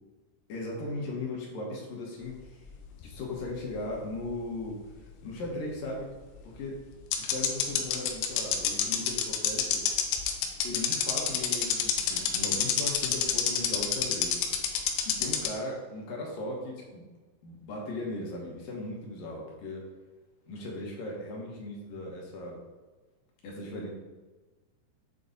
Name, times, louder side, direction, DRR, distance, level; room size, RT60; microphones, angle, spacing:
voice 1, 0.5-2.6 3.0-4.8 5.2-6.1 6.4-6.8 7.3-9.9 10.6-14.4 15.1-17.1 17.4-19.9 20.5-22.6 23.4-23.9, left 2 dB, 65° left, -2 dB, 2.5 m, -37 dB
sound 1, 2.6-4.2 4.4-4.5 6.4-6.5 7.1-15.5, left 9 dB, 80° left, 2.1 m, -27 dB
8.1 x 3.1 x 3.8 m, 1.3 s
omnidirectional pair, 4.8 m